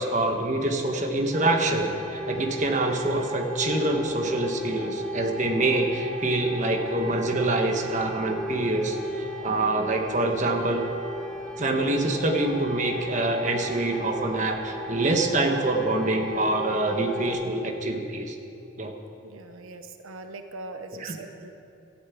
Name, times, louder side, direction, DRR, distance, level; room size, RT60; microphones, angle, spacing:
voice 1, 0.0-10.8 11.6-18.3 18.8-18.9 20.9-21.2, right 2 dB, 35° right, 3 dB, 1.3 m, -26 dB
sound 1, 1.3-17.3, equal, ahead, 2.0 m, -35 dB
voice 2, 19.2-21.5, right 3 dB, 85° right, 7 dB, 0.8 m, -41 dB
14.0 x 9.2 x 8.5 m, 2.7 s
head